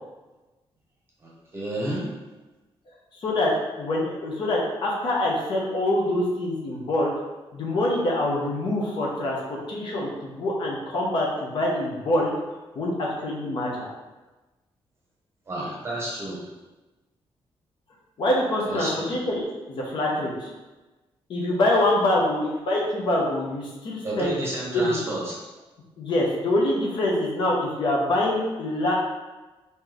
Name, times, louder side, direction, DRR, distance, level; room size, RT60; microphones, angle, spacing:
voice 1, 1.2-2.0 15.5-16.5 18.7-19.2 24.0-25.4, right 1 dB, 25° right, -4 dB, 0.9 m, -31 dB
voice 2, 3.2-7.1 7.5-12.3 12.8-13.9 18.2-20.5 21.3-24.3 24.7-25.0 26.0-28.9, left 1 dB, 55° left, -2 dB, 0.7 m, -25 dB
3.1 x 2.7 x 3.8 m, 1.2 s
wide cardioid pair, 170°, 10 cm